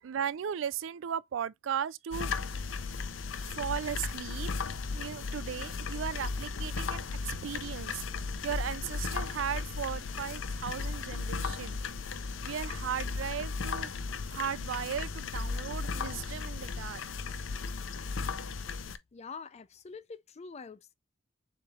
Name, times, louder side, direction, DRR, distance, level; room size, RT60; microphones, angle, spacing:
voice 1, 0.0-2.3 2.5-2.6 3.6-4.5 4.9-8.0 8.4-11.8 12.4-13.9 14.3-17.0, right 8 dB, 75° right, 0.4 m, -36 dB
sound 1, 2.1-19.0, left 4 dB, 80° left, 0.6 m, -36 dB
sound 2, 4.8-12.5, equal, 25° right, 2.1 m, -56 dB
voice 2, 19.1-21.0, left 5 dB, 35° left, 0.4 m, -45 dB
6.9 x 3.3 x 2.3 m
head